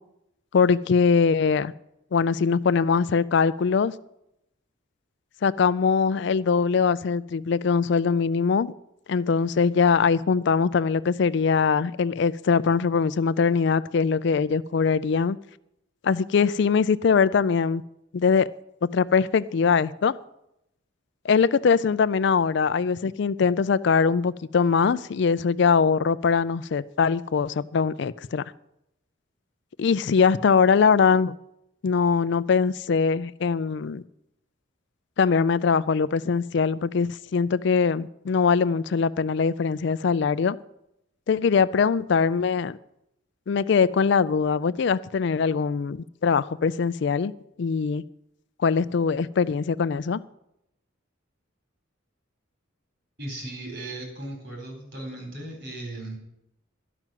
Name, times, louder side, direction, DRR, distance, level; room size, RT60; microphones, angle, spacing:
voice 1, 0.5-1.7 2.1-3.9 5.4-8.7 9.1-15.4 16.0-17.8 18.1-18.5 18.9-20.2 21.2-28.4 29.8-31.3 31.8-34.0 35.2-40.6 41.3-42.8 43.5-47.3 47.6-48.0 48.6-50.2, left 5 dB, 60° left, 0.4 m, -22 dB
voice 2, 53.2-56.2, right 1 dB, 60° right, 4.3 m, -37 dB
12.0 x 6.1 x 9.1 m
head